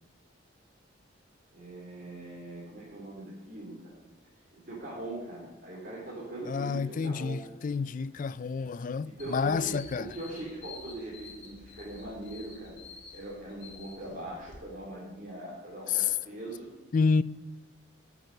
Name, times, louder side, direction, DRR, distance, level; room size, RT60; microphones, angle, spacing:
voice 1, 1.5-4.0 4.5-7.4 9.0-12.8 13.1-16.7, right 1 dB, 50° right, 3.3 m, -41 dB
voice 2, 6.5-10.1 15.9-16.1 16.9-17.2, left 5 dB, 45° left, 0.3 m, -29 dB
sound 1, 9.2-14.6, left 4 dB, 75° left, 2.8 m, -50 dB
13.5 x 7.0 x 6.5 m
head